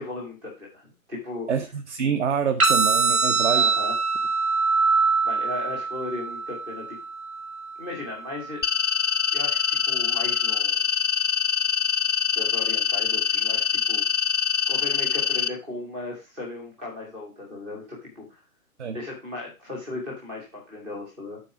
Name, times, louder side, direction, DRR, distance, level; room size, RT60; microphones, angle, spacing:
voice 1, 0.0-1.5 3.5-4.0 5.2-7.0 7.8-8.6 9.3-10.8 12.3-14.0 14.7-18.4 18.9-21.4, left 2 dB, 5° right, 0.5 m, -36 dB
voice 2, 1.5-3.7 18.8-19.0, right 6 dB, 55° right, 0.9 m, -26 dB
sound 1, 2.6-10.6, right 4 dB, 70° right, 2.3 m, -25 dB
sound 2, 8.6-15.5, left 9 dB, 55° left, 0.7 m, -24 dB
9.1 x 4.0 x 4.4 m
figure-of-eight pair, 125°, 43 cm